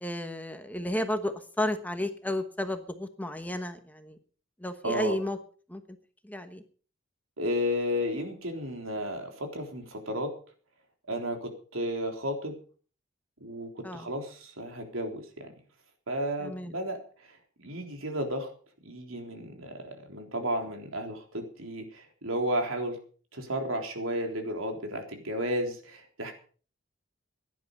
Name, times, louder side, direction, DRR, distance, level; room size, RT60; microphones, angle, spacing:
voice 1, 0.0-4.2 4.6-5.4 5.7-5.8 6.2-6.6 13.8-14.1 16.4-16.8, left 1 dB, 10° left, 8 dB, 1.1 m, -32 dB
voice 2, 4.8-5.1 7.4-10.3 11.1-12.5 13.4-15.5 16.1-17.0 17.6-18.5 18.9-23.0 23.3-26.3, equal, 85° right, 3 dB, 3.7 m, -33 dB
16.5 x 11.0 x 5.4 m, 0.42 s
head